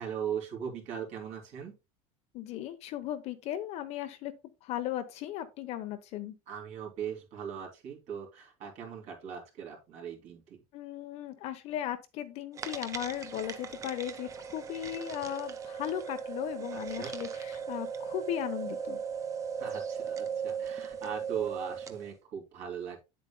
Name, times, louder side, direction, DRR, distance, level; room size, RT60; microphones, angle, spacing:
voice 1, 0.0-1.7 6.5-10.6 16.7-17.1 19.6-23.0, right 8 dB, 50° right, 3.1 m, -39 dB
voice 2, 2.3-4.3 4.6-6.3 10.7-19.0, left 12 dB, 45° left, 1.0 m, -37 dB
sound 1, 12.5-22.1, right 7 dB, 20° right, 0.7 m, -38 dB
9.0 x 7.8 x 2.2 m
cardioid pair, 155°, 15 cm